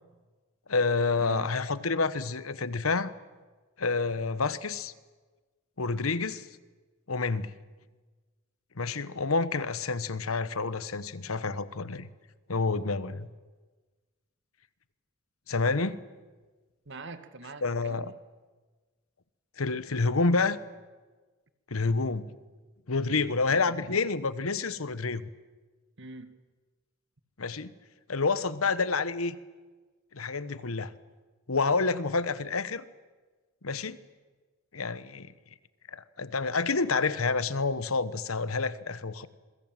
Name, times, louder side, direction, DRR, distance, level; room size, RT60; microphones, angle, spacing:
voice 1, 0.7-3.1 3.8-4.9 5.8-6.5 7.1-7.5 8.8-12.1 12.5-13.3 15.5-16.0 17.6-18.1 19.6-20.6 21.7-22.3 22.9-25.2 27.4-27.7 28.1-29.4 30.1-30.9 31.5-32.9 33.6-34.0 34.7-35.3 35.9-39.3, left 4 dB, 85° left, 15 dB, 1.2 m, -28 dB
voice 2, 16.9-18.1 23.5-23.8 26.0-26.3, right 3 dB, 60° right, 10 dB, 1.9 m, -44 dB
27.0 x 22.0 x 9.1 m, 1.3 s
head